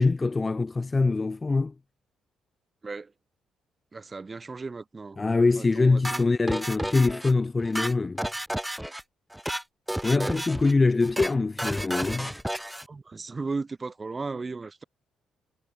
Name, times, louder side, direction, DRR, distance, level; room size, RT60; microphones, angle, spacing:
voice 1, 0.0-1.7 5.2-8.3 10.0-12.3, left 3 dB, 25° left, 0.4 m, -24 dB
voice 2, 3.9-5.2 5.6-6.3 10.1-10.4 12.9-14.8, right 4 dB, 25° right, 5.1 m, -36 dB
sound 1, 6.0-7.3 7.6-9.0 9.3-9.6 9.9-10.7 11.0-11.3 11.6-12.9, equal, 5° right, 3.6 m, -32 dB
cardioid pair, 90°, 0 cm